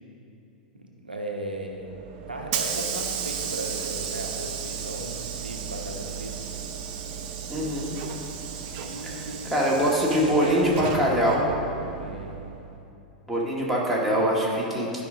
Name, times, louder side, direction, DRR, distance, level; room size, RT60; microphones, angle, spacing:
voice 1, 0.7-1.9 2.3-6.4 8.7-11.1 12.0-12.5, right 1 dB, 85° right, 0 dB, 0.9 m, -36 dB
Hiss / Sliding door, 1.8-12.7, right 7 dB, 45° right, 0.8 m, -34 dB
voice 2, 7.5-7.9 9.0-9.2 9.5-11.4 13.3-15.0, equal, ahead, -5 dB, 1.9 m, -23 dB
12.5 x 5.2 x 3.7 m, 2.7 s
figure-of-eight pair, 95°, 5 cm